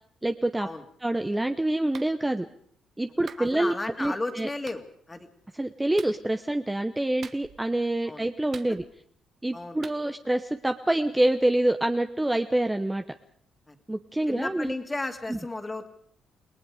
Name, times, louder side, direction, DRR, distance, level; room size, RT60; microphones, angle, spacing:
voice 1, 0.2-0.7 1.0-2.5 3.0-4.5 5.5-8.8 9.4-13.0 13.9-14.7 15.3-15.4, right 1 dB, 10° right, 7 dB, 0.9 m, -26 dB
Clapping, 1.9-2.1 3.3-3.5 4.7-4.8 6.0-6.2 7.2-7.7 8.5-9.1 9.8-10.0, right 6 dB, 55° right, 1.3 m, -45 dB
voice 2, 3.4-5.3 8.1-8.2 9.5-9.8 13.7-13.8 14.3-15.9, left 2 dB, 20° left, 5 dB, 2.5 m, -34 dB
28.0 x 19.0 x 5.0 m, 0.63 s
cardioid pair, 90°, 0 cm